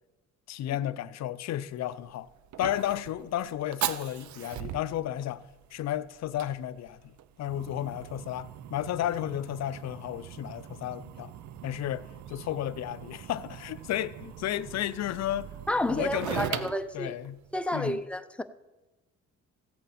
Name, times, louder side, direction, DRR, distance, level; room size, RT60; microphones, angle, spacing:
voice 1, 0.5-2.3 2.6-5.4 5.7-7.1 7.4-11.3 11.6-15.5 15.9-16.7 16.9-17.4 17.7-18.0, left 12 dB, 60° left, 0.5 m, -33 dB
Fire, 1.7-17.9, right 11 dB, 70° right, 0.6 m, -41 dB
voice 2, 15.7-17.1 17.5-18.4, left 1 dB, 5° left, 0.6 m, -30 dB
15.0 x 8.2 x 4.2 m
cardioid pair, 90°, 30 cm